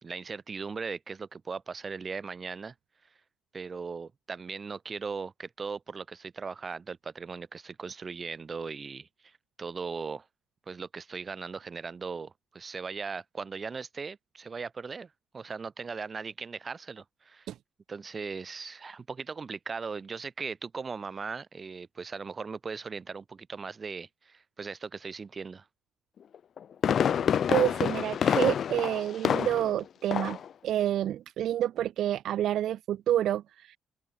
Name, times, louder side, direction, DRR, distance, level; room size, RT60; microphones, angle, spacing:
voice 1, 0.0-2.7 3.5-10.3 10.7-17.5 17.9-25.7, right 5 dB, 25° right, 2.2 m, -38 dB
Fireworks, 26.3-29.8 30.1-30.5 30.8-30.9, left 8 dB, 45° left, 0.4 m, -27 dB
voice 2, 27.5-30.4 30.6-33.8, right 11 dB, 70° right, 0.4 m, -28 dB
open air
cardioid pair, 165°, 0 cm